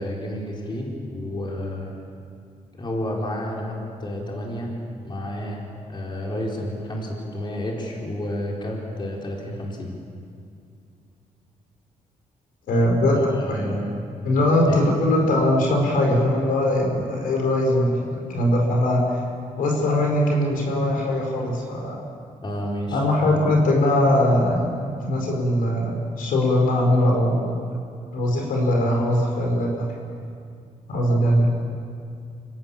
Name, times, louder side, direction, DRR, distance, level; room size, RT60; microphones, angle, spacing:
voice 1, 0.0-1.9 2.8-4.7 5.0-5.6 5.9-9.9 13.3-13.9 14.7-14.9 22.4-23.0, equal, 35° left, -2 dB, 4.3 m, -30 dB
voice 2, 12.7-13.8 14.2-19.2 19.6-22.0 22.9-27.5 28.1-29.8 30.9-31.5, left 1 dB, 85° left, 0 dB, 5.1 m, -21 dB
26.0 x 17.0 x 7.3 m, 2.4 s
cardioid pair, 110°, 14 cm